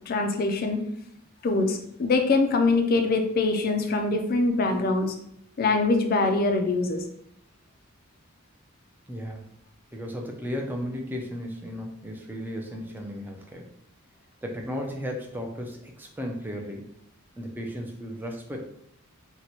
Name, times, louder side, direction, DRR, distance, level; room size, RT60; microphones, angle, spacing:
voice 1, 0.1-0.8 1.4-5.1 5.6-7.0, left 3 dB, 45° left, 6 dB, 0.4 m, -23 dB
voice 2, 9.1-9.4 9.9-13.7 14.4-16.9 17.4-18.6, equal, 10° right, 1 dB, 0.4 m, -35 dB
2.9 x 2.2 x 4.0 m, 0.73 s
head